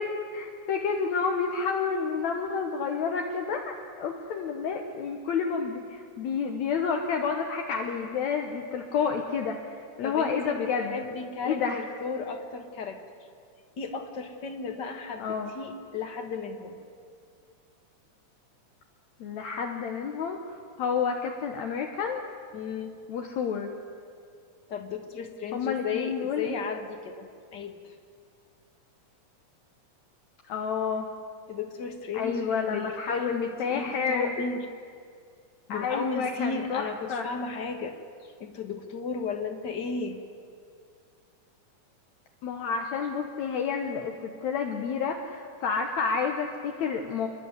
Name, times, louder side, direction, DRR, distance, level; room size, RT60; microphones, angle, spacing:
voice 1, 0.0-9.6 10.0-11.0 11.4-11.8 15.2-15.5 19.2-22.2 23.1-23.7 25.5-26.5 30.5-31.1 32.1-34.3 35.7-37.3 42.4-47.3, left 6 dB, 70° left, 3 dB, 2.3 m, -30 dB
voice 2, 10.0-13.0 13.8-16.8 22.5-23.0 24.7-27.9 31.5-34.7 35.7-38.0 38.2-40.2, left 4 dB, 45° left, 6 dB, 1.6 m, -34 dB
28.5 x 11.5 x 9.7 m, 2.3 s
omnidirectional pair, 3.5 m